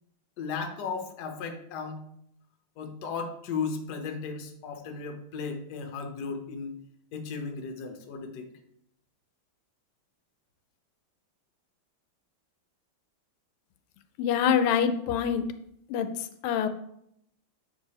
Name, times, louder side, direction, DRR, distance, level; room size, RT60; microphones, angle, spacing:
voice 1, 0.4-2.0 2.8-6.7 7.1-8.5, left 5 dB, 60° left, 5 dB, 1.2 m, -35 dB
voice 2, 14.2-15.5 15.9-16.7, left 8 dB, 90° left, 9 dB, 1.5 m, -25 dB
7.9 x 4.7 x 2.9 m, 0.74 s
omnidirectional pair, 2.4 m